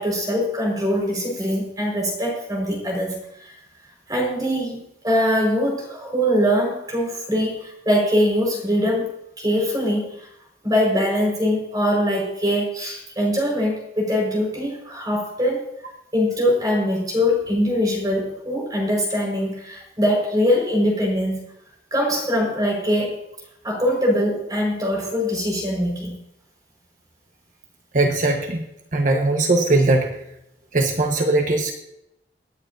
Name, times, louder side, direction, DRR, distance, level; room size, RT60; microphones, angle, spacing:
voice 1, 0.0-3.5 4.1-9.1 9.4-10.3 10.6-15.6 16.1-21.4 21.9-23.2 23.6-26.2, equal, 20° right, -1 dB, 5.1 m, -22 dB
voice 2, 27.9-28.6 28.9-30.2 30.7-31.7, right 2 dB, 50° right, 3 dB, 1.3 m, -20 dB
24.5 x 9.8 x 2.7 m, 0.83 s
head